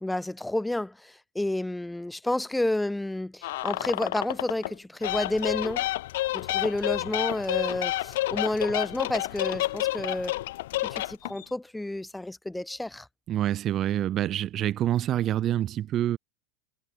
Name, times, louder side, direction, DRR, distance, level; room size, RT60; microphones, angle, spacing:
voice 1, 0.0-5.8 6.3-10.4 10.8-13.1, left 1 dB, 5° left, 0.7 m, -30 dB
sound 1, 3.4-4.7 5.0-11.4, left 17 dB, 80° left, 1.5 m, -30 dB
voice 2, 13.3-16.2, right 12 dB, 35° right, 0.5 m, -26 dB
supercardioid pair, 150°, 0 cm